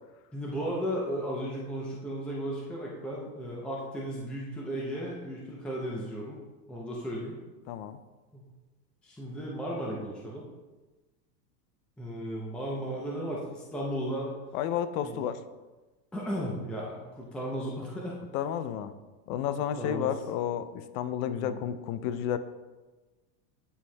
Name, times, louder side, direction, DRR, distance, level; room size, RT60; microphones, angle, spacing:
voice 1, 0.3-6.4 6.7-7.4 8.3-8.4 9.0-10.4 12.0-14.3 15.0-15.2 16.1-18.2 19.3-19.5 19.8-20.1 21.4-21.6, equal, ahead, -4 dB, 0.5 m, -35 dB
voice 2, 7.7-8.0 14.5-15.4 18.3-18.9 19.3-22.4, left 9 dB, 55° left, 12 dB, 0.6 m, -31 dB
10.0 x 4.5 x 2.2 m, 1.2 s
supercardioid pair, 130°, 50 cm